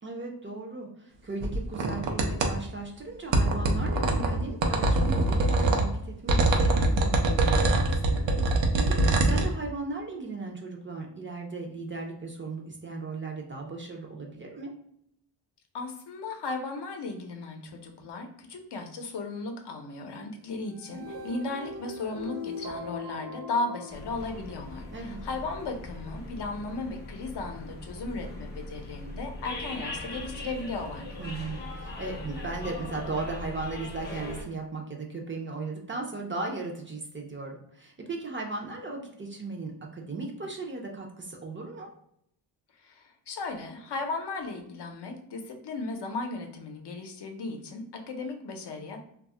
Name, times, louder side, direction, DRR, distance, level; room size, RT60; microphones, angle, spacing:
voice 1, 0.0-8.3 8.5-14.7 24.9-25.2 31.2-41.9, right 3 dB, 30° right, 0 dB, 0.4 m, -37 dB
sound 1, 1.4-2.5 3.3-5.8 6.3-9.4, right 2 dB, 85° right, 0.6 m, -23 dB
voice 2, 15.7-31.2 42.8-49.1, left 3 dB, 65° left, 4 dB, 0.6 m, -36 dB
sound 2, 20.7-25.0, left 3 dB, 55° right, 0.8 m, -40 dB
sound 3, 23.9-34.4, left 2 dB, 25° left, 0.5 m, -40 dB
2.3 x 2.0 x 3.6 m, 0.72 s
wide cardioid pair, 110°, 44 cm